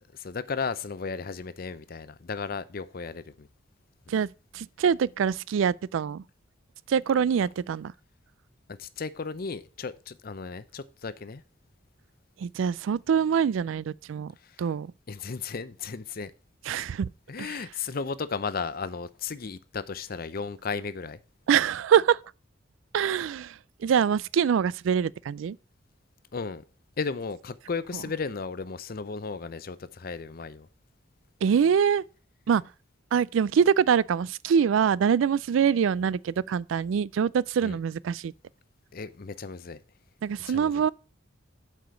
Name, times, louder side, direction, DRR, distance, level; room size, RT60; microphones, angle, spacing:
voice 1, 0.0-3.5 7.4-7.5 8.7-11.4 14.4-14.6 15.1-16.3 17.3-21.2 26.3-26.6 27.0-30.7 37.6-37.8 38.9-39.8 40.4-40.8, left 5 dB, 50° left, 0.6 m, -35 dB
voice 2, 4.5-6.2 6.9-7.9 12.4-14.3 14.6-14.9 16.7-17.1 17.4-17.6 21.5-22.2 22.9-23.5 23.8-25.6 31.4-32.0 32.5-32.6 33.1-38.3 40.2-40.9, right 7 dB, 85° right, 0.3 m, -24 dB
7.6 x 5.0 x 6.9 m
head